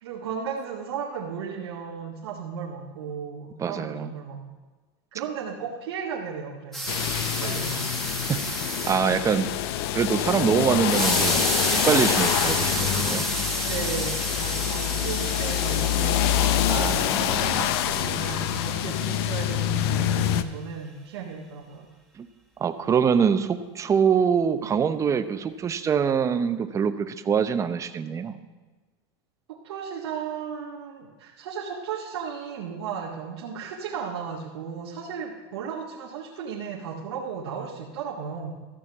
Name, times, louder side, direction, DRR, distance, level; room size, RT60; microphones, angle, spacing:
voice 1, 0.0-4.4 5.1-8.1 13.7-17.0 17.8-21.9 29.5-38.5, right 6 dB, 80° right, -4 dB, 1.7 m, -35 dB
voice 2, 3.6-4.1 8.3-8.4 8.9-9.5 9.9-13.2 16.7-17.6 22.2-22.3 22.6-28.4, right 7 dB, 25° right, 10 dB, 0.7 m, -24 dB
sound 1, 6.7-9.0 10.8-19.2, right 1 dB, ahead, 1.6 m, -31 dB
sound 2, 6.9-20.4, left 11 dB, 70° left, 0.7 m, -26 dB
13.5 x 6.4 x 7.2 m, 1.3 s
supercardioid pair, 125°, 14 cm